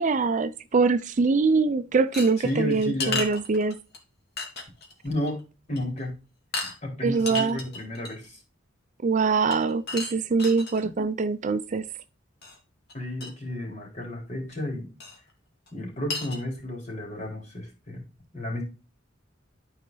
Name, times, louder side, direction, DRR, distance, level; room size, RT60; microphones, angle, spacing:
voice 1, 0.0-3.8 7.0-7.6 9.0-11.8, right 4 dB, 40° right, 0.4 m, -23 dB
sound 1, 2.1-4.0 4.4-4.9 5.3-5.4 5.7-6.0 6.5-6.7 7.1-8.3 9.5-10.8 12.4-12.6 12.9-13.0 13.2-13.3 15.0-15.2 15.7-15.8 16.1-16.4, left 3 dB, 50° left, 2.2 m, -33 dB
voice 2, 2.4-3.3 5.0-5.4 5.7-6.1 6.8-8.4 10.8-11.1 12.9-14.9 15.7-18.0 18.3-18.6, left 1 dB, 35° left, 3.7 m, -32 dB
12.0 x 5.0 x 3.9 m
head